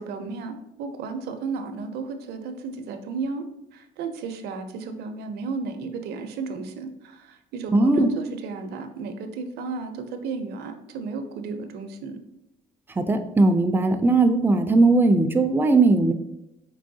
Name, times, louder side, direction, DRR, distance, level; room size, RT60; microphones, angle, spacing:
voice 1, 0.0-3.4 3.7-12.2, right 4 dB, 70° right, 7 dB, 0.5 m, -33 dB
voice 2, 7.7-8.1 13.0-16.1, right 3 dB, 10° right, 7 dB, 0.3 m, -19 dB
4.6 x 3.0 x 2.6 m, 0.86 s
cardioid pair, 110°, 17 cm